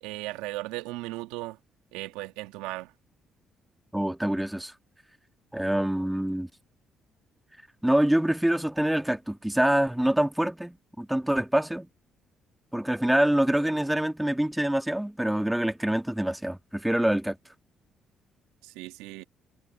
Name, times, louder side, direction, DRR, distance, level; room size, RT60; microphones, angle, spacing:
voice 1, 0.0-1.6 1.9-2.9 18.6-19.2, right 19 dB, 85° right, 1.4 m, -36 dB
voice 2, 3.9-4.7 5.5-6.5 7.8-11.9 12.7-17.4, right 1 dB, 5° right, 1.8 m, -25 dB
hypercardioid pair, 55°, 0 cm